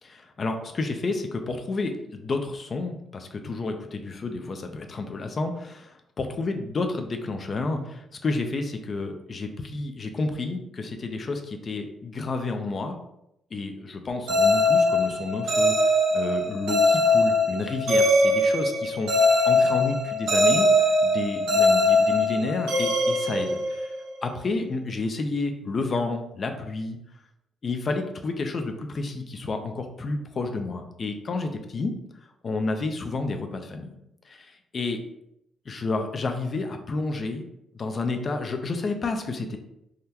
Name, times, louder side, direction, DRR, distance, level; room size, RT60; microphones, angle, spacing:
voice 1, 0.0-13.0 13.5-20.7 21.0-23.9 24.2-27.0 27.6-31.9 32.4-34.0 34.2-35.0 35.7-37.4 37.7-39.6, left 3 dB, 45° left, 5 dB, 0.4 m, -30 dB
sound 1, 14.3-24.1, left 1 dB, 85° right, 0.9 m, -21 dB
3.5 x 2.1 x 2.8 m, 0.80 s
cardioid pair, 95°, 0 cm